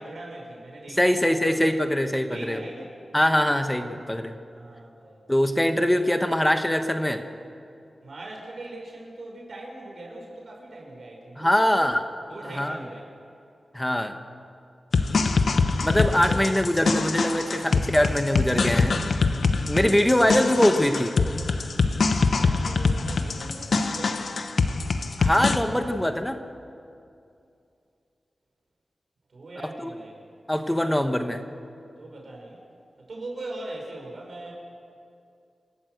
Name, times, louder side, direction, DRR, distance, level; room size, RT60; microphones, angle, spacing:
voice 1, 0.0-1.6 2.3-2.9 4.5-5.2 8.0-11.9 12.3-13.1 15.2-16.4 22.1-24.3 29.3-30.1 32.0-32.6 33.0-34.5, right 2 dB, 60° right, -1 dB, 5.9 m, -40 dB
voice 2, 1.0-2.6 3.1-4.4 5.3-7.2 11.4-12.0 12.4-12.8 13.7-14.2 15.8-19.0 19.7-21.1 25.2-26.4 29.8-29.9 30.5-31.4, left 1 dB, 10° left, 7 dB, 1.1 m, -23 dB
sound 1, 14.9-25.6, left 4 dB, 70° left, 1.2 m, -24 dB
28.0 x 12.5 x 8.0 m, 2.5 s
wide cardioid pair, 105°, 0 cm